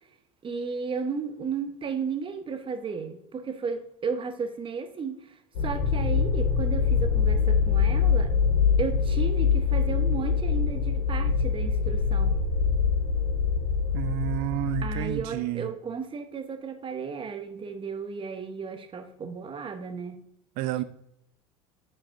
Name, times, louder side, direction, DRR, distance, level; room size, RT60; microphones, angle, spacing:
voice 1, 0.4-5.2 5.6-8.3 8.8-12.4 14.8-20.2, right 5 dB, 30° right, 8 dB, 1.0 m, -34 dB
sound 1, 5.5-15.2, left 6 dB, 70° left, 2.2 m, -24 dB
voice 2, 13.9-15.7 20.6-20.8, right 14 dB, 60° right, 15 dB, 0.6 m, -30 dB
8.3 x 5.4 x 2.6 m, 0.77 s
hypercardioid pair, 70°, 17 cm